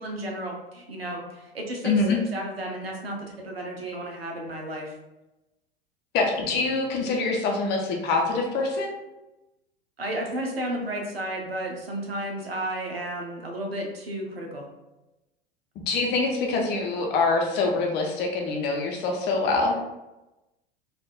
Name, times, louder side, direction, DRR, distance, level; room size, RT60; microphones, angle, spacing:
voice 1, 0.0-4.9 10.0-14.7, right 1 dB, 80° right, 1 dB, 0.7 m, -33 dB
voice 2, 1.8-2.2 6.1-8.9 15.9-19.8, left 3 dB, 35° left, 1 dB, 0.7 m, -25 dB
3.4 x 2.4 x 2.3 m, 0.99 s
figure-of-eight pair, 80°, 30 cm